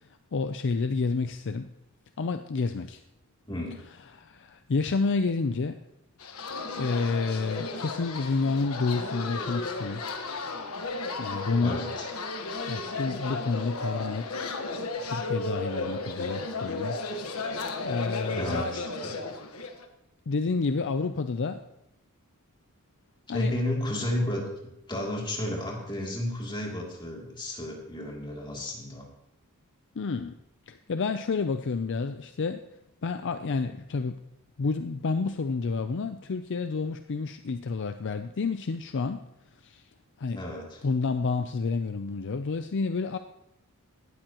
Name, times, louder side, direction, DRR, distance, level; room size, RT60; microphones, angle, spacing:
voice 1, 0.0-1.7 2.2-3.0 4.1-5.8 6.7-10.0 11.2-11.8 12.7-14.4 15.0-17.0 17.4-18.6 20.3-21.6 23.3-23.5 30.0-30.4 30.7-32.7 33.0-34.2 34.6-39.3 39.6-39.8 40.2-40.4 40.8-43.2, left 4 dB, 55° left, 9 dB, 0.5 m, -29 dB
sound 1, 6.2-19.9, left 3 dB, 75° left, 1.4 m, -34 dB
voice 2, 11.6-12.1 18.3-19.1 23.3-24.5 24.9-29.1 40.3-40.8, left 1 dB, 20° left, -2 dB, 2.9 m, -32 dB
18.0 x 12.5 x 3.0 m, 0.88 s
head